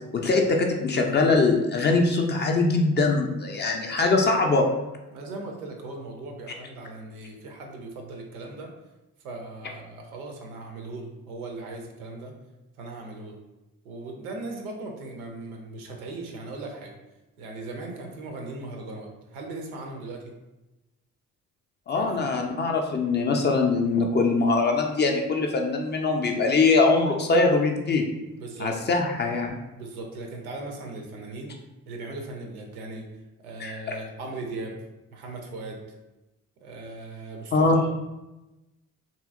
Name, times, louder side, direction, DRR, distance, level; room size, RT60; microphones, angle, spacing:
voice 1, 0.2-4.6 21.9-28.1 28.6-29.5 33.6-34.0 37.5-37.8, left 3 dB, 25° left, 2 dB, 0.4 m, -22 dB
voice 2, 5.1-8.7 9.2-12.3 12.8-13.4 13.8-16.9 17.4-20.3 21.9-22.4 28.3-28.9 29.8-31.5 31.9-33.1 33.4-34.8 35.1-35.9 36.6-37.9, right 2 dB, 80° right, 2 dB, 0.6 m, -38 dB
2.7 x 2.7 x 2.4 m, 1.0 s
figure-of-eight pair, 40°, 43 cm